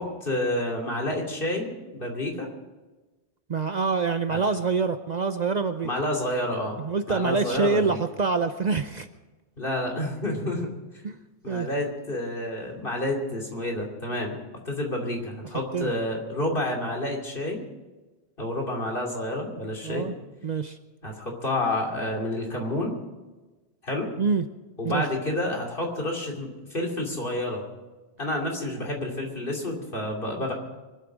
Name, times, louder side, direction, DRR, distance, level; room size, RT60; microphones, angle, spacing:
voice 1, 0.0-2.5 4.3-4.4 5.8-6.8 7.1-8.0 9.6-10.8 11.4-14.4 14.6-17.6 18.4-20.1 21.0-22.9 23.8-24.1 24.8-27.6 28.2-30.5, left 1 dB, 55° left, 0 dB, 3.1 m, -29 dB
voice 2, 3.5-5.9 6.8-9.1 10.2-10.4 11.0-11.2 11.5-11.7 15.7-15.9 19.8-20.1 20.4-20.8 24.2-24.4 24.8-25.1, right 4 dB, 50° right, 9 dB, 0.7 m, -26 dB
24.5 x 8.2 x 6.2 m, 1.2 s
omnidirectional pair, 1.1 m